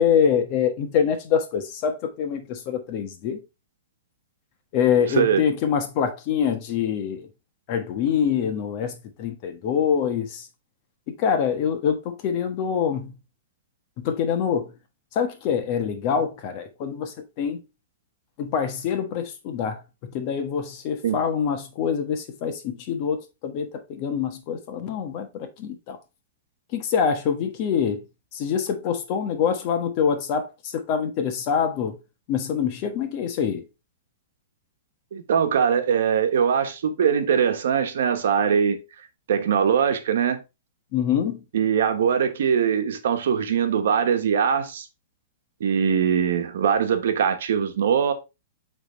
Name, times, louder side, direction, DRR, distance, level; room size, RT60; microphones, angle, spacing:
voice 1, 0.0-3.4 4.7-7.3 7.7-10.5 11.1-13.1 14.0-14.7 15.1-17.6 18.4-26.0 26.7-28.0 28.3-32.0 32.3-33.6 40.9-41.4, left 7 dB, 40° left, 1.2 m, -25 dB
voice 2, 35.1-38.8 39.3-40.4 41.5-44.9 45.6-48.1, right 7 dB, 75° right, 1.1 m, -22 dB
8.2 x 3.5 x 3.3 m
hypercardioid pair, 150°, 0 cm